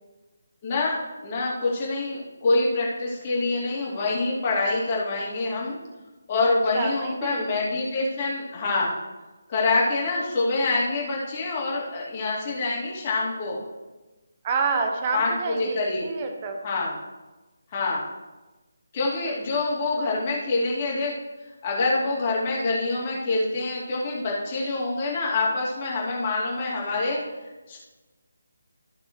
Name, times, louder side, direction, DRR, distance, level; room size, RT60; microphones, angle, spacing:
voice 1, 0.6-0.9 1.2-5.8 6.3-9.0 9.5-13.6 15.1-16.1 16.6-17.0 17.7-18.0 18.9-21.1 21.6-27.2 27.7-27.8, left 3 dB, 25° left, -5 dB, 2.3 m, -26 dB
voice 2, 6.5-7.5 14.4-16.6, right 4 dB, 25° right, 5 dB, 1.1 m, -28 dB
14.5 x 6.0 x 3.1 m, 1.1 s
figure-of-eight pair, 150°, 0 cm